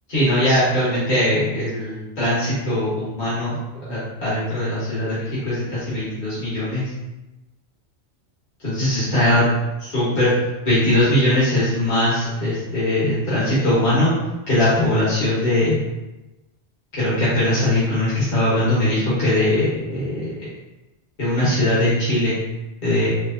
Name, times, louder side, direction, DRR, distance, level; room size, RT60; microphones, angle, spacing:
voice 1, 0.1-3.6 3.9-6.9 8.6-9.4 9.8-10.3 10.6-14.1 14.5-15.8 16.9-20.3 21.2-22.3 22.8-23.1, left 1 dB, 40° left, -11 dB, 1.6 m, -20 dB
4.6 x 2.3 x 2.8 m, 1.0 s
omnidirectional pair, 1.2 m